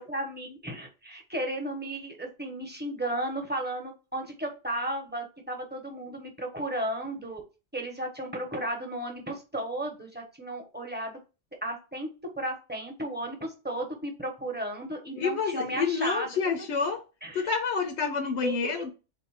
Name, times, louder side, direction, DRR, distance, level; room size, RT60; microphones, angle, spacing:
voice 1, 0.0-7.4 7.7-11.2 11.6-12.1 12.4-16.3 17.2-17.5 18.4-18.9, right 1 dB, 10° right, 0.8 m, -34 dB
voice 2, 15.2-17.0 17.3-18.9, left 5 dB, 85° left, 0.9 m, -28 dB
3.7 x 2.6 x 4.7 m
omnidirectional pair, 1.1 m